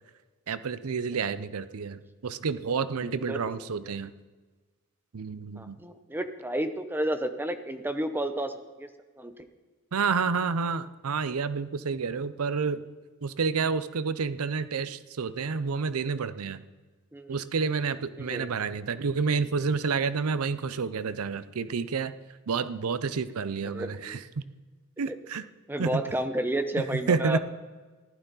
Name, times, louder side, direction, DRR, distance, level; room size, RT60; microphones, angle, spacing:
voice 1, 0.5-4.1 5.1-5.8 9.9-12.8 13.2-16.6 17.3-22.1 22.5-24.4 25.0-25.4 25.8-26.0 26.8-27.4, right 5 dB, 90° right, 14 dB, 0.6 m, -29 dB
voice 2, 3.0-3.4 5.6-8.9 9.2-9.3 17.1-17.4 18.2-18.6 23.7-24.2 25.1-25.2 25.7-27.4, right 1 dB, 10° right, 8 dB, 0.7 m, -31 dB
15.0 x 11.5 x 4.1 m, 1.3 s
head